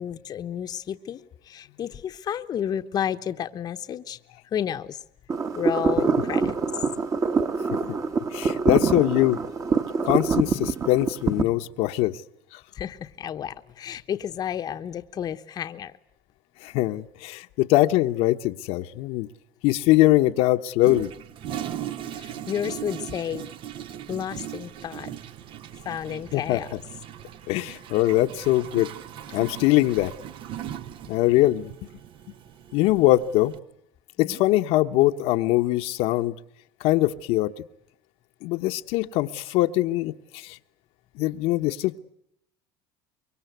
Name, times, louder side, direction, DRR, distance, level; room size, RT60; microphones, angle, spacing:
voice 1, 0.0-4.2 4.5-5.0 5.6-6.5 12.7-15.9 22.2-23.5 24.1-25.1 25.8-26.7 34.2-34.4, left 9 dB, 35° left, 8 dB, 1.0 m, -31 dB
sound 1, 5.3-11.4, right 4 dB, 30° right, 1.7 m, -25 dB
voice 2, 8.3-9.4 10.0-12.2 12.5-12.6 16.6-19.3 19.6-21.1 26.3-26.6 27.5-28.9 29.3-30.1 31.1-31.7 32.7-33.5 34.2-36.3 36.8-37.5 38.4-40.6 41.2-42.0, left 16 dB, 65° left, 6 dB, 1.1 m, -22 dB
Toilet flush, 20.8-33.6, right 10 dB, 50° right, 1.0 m, -38 dB
24.5 x 23.5 x 8.1 m, 0.75 s
cardioid pair, 125°, 11 cm